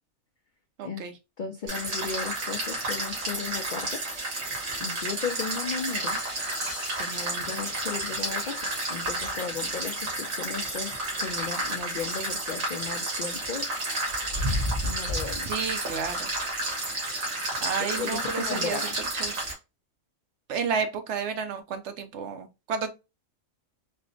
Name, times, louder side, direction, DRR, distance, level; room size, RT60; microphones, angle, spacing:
voice 1, 0.8-1.1 15.4-16.3 17.6-18.9 19.2-19.4 20.5-22.9, right 6 dB, 65° right, 0.8 m, -31 dB
voice 2, 1.4-4.0 4.8-6.2 7.0-10.9 11.2-13.7 14.8-15.5 17.5-18.9, left 6 dB, 85° left, 0.4 m, -35 dB
sound 1, 1.7-19.5, right 1 dB, 85° right, 1.9 m, -31 dB
sound 2, 5.2-8.0, left 3 dB, 20° left, 1.0 m, -46 dB
4.4 x 2.1 x 2.5 m
omnidirectional pair, 1.4 m